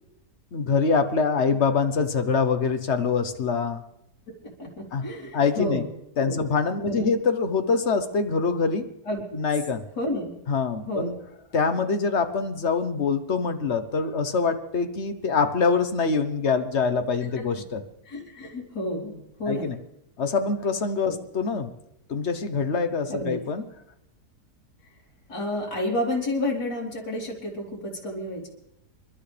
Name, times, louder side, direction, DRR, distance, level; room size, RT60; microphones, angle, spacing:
voice 1, 0.5-3.8 4.9-5.0 5.3-5.8 6.2-8.9 9.3-9.8 10.5-11.2 11.5-17.8 19.5-19.8 20.2-21.7 22.1-23.6, left 5 dB, 45° left, 8 dB, 1.2 m, -24 dB
voice 2, 4.4-5.9 6.2-6.4 6.8-7.0 9.1-9.2 10.0-10.3 10.9-11.2 18.1-19.7 21.0-21.2 23.1-23.4 25.3-28.5, left 1 dB, 85° left, -3 dB, 4.0 m, -30 dB
28.0 x 12.0 x 3.4 m, 0.81 s
omnidirectional pair, 1.8 m